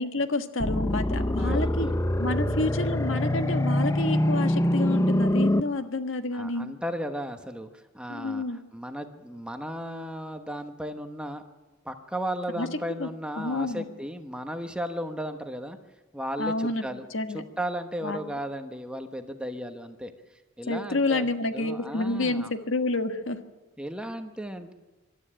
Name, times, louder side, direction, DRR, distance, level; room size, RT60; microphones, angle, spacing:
voice 1, 0.0-1.9 2.2-6.7 8.1-8.6 12.6-12.7 13.0-13.1 13.4-13.8 16.4-17.4 18.0-18.3 20.7-23.4, left 2 dB, 65° left, 8 dB, 1.5 m, -29 dB
sound 1, 0.6-5.6, left 1 dB, 15° left, 0.6 m, -24 dB
voice 2, 1.3-1.9 4.9-5.6 6.3-8.4 8.7-11.4 11.8-15.8 16.1-17.0 17.3-21.3 21.5-22.5 23.8-24.7, equal, 5° right, 6 dB, 1.1 m, -35 dB
25.5 x 12.5 x 10.0 m, 1.3 s
head